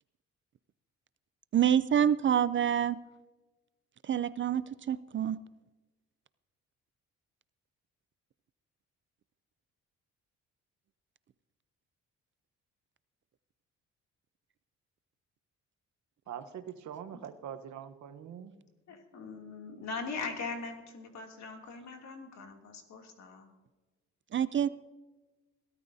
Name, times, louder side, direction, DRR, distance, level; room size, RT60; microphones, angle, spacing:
voice 1, 1.5-3.0 4.0-5.4 24.3-24.7, right 9 dB, 40° right, 16 dB, 0.4 m, -27 dB
voice 2, 16.3-18.6, right 9 dB, 70° right, 8 dB, 1.1 m, -43 dB
voice 3, 18.9-23.5, left 4 dB, 65° left, 2 dB, 2.7 m, -41 dB
22.0 x 13.0 x 2.7 m, 1.2 s
cardioid pair, 90°, 30 cm